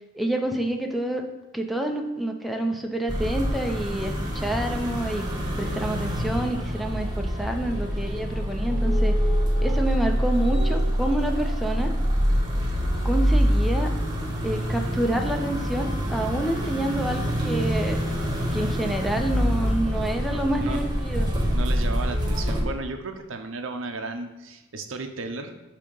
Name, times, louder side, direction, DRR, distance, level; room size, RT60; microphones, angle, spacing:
voice 1, 0.1-1.2 1.5-5.2 5.6-9.2 9.6-11.9 13.0-13.9 14.4-18.0 18.5-21.3, right 1 dB, ahead, 3 dB, 0.5 m, -28 dB
sound 1, 3.1-22.6, equal, 20° right, 1.0 m, -25 dB
voice 2, 20.0-20.8 21.5-25.5, right 3 dB, 70° right, 6 dB, 0.7 m, -34 dB
8.5 x 2.8 x 5.4 m, 1.0 s
head